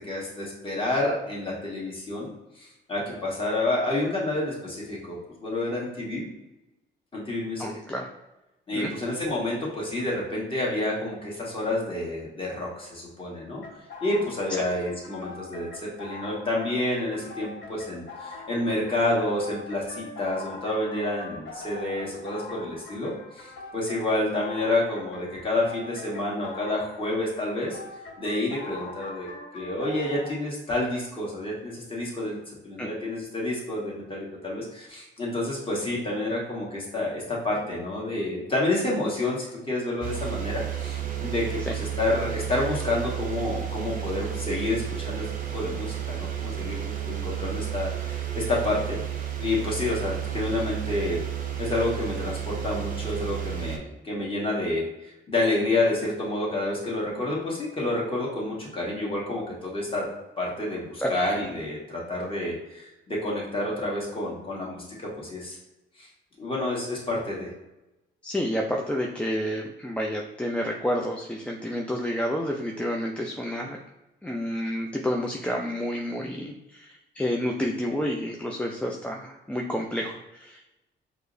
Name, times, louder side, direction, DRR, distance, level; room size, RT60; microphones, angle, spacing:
voice 1, 0.0-2.3 2.6-6.3 7.1-7.7 8.7-13.6 14.0-27.8 28.2-29.3 29.5-32.4 32.6-45.3 45.5-49.0 49.4-51.2 51.6-60.0 60.4-65.6 66.0-66.1 66.4-67.5, left 2 dB, 25° left, -4 dB, 1.4 m, -29 dB
voice 2, 7.6-8.1 8.7-8.9 32.8-32.9 41.7-41.8 61.0-61.1 68.2-73.8 74.2-80.6, equal, 5° left, -1 dB, 0.3 m, -29 dB
sound 1, 13.6-30.3, left 3 dB, 70° left, 0.8 m, -43 dB
sound 2, 40.0-53.8, right 11 dB, 45° right, 0.6 m, -32 dB
4.7 x 2.0 x 2.5 m, 0.97 s
cardioid pair, 90°, 20 cm